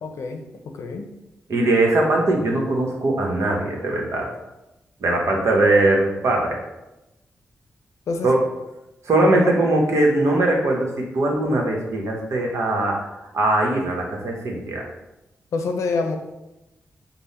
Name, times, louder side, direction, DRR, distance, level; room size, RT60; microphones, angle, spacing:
voice 1, 0.0-1.1 8.1-8.3 9.3-9.6 15.5-16.2, left 4 dB, 80° left, 5 dB, 0.6 m, -27 dB
voice 2, 1.5-4.3 5.0-6.6 8.2-8.4 9.0-13.1 13.3-14.8, right 2 dB, 70° right, 0 dB, 1.1 m, -20 dB
5.5 x 2.2 x 4.1 m, 0.96 s
supercardioid pair, 45°, 5 cm